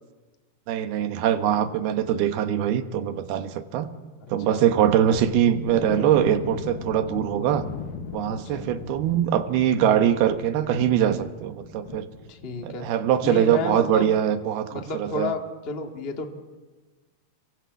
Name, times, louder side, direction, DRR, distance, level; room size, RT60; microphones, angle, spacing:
voice 1, 0.7-3.9 4.3-7.7 8.1-12.1 12.6-15.3, right 10 dB, 80° right, 9 dB, 3.2 m, -22 dB
voice 2, 4.2-4.6 8.3-8.7 12.3-12.9 13.2-14.1 14.7-16.3, left 3 dB, 25° left, 3 dB, 1.4 m, -32 dB
sound 1, 5.1-12.9 13.2-13.4 13.8-13.9, left 6 dB, 65° left, 3.0 m, -38 dB
27.5 x 24.5 x 8.3 m, 1.3 s
omnidirectional pair, 4.4 m